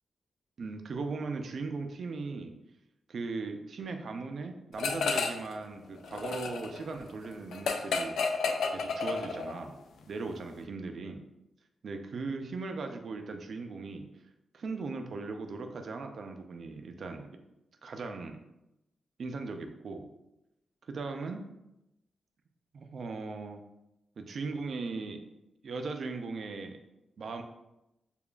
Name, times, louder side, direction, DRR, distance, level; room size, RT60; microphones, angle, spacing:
voice 1, 0.6-2.5 3.1-8.2 8.7-9.7 10.1-11.2 11.8-14.1 14.5-17.3 17.8-18.4 19.2-20.1 20.9-21.4 22.7-23.6 24.2-25.2 25.6-26.8 27.2-27.4, right 3 dB, 50° right, 5 dB, 0.4 m, -38 dB
sound 1, 4.8-5.5 5.8-9.6, left 4 dB, 90° left, 0.4 m, -31 dB
6.8 x 2.4 x 2.3 m, 0.91 s
wide cardioid pair, 175°, 0 cm